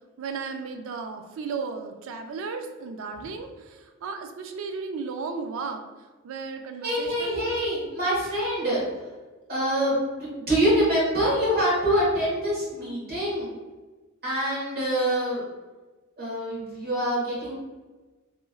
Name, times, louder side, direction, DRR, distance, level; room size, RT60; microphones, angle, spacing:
voice 1, 0.2-5.8 6.2-7.5, right 4 dB, 65° right, 6 dB, 0.3 m, -35 dB
voice 2, 6.8-8.8 9.5-13.5 14.2-15.4 16.2-17.5, equal, 50° right, -6 dB, 1.2 m, -25 dB
3.0 x 2.3 x 2.3 m, 1.2 s
head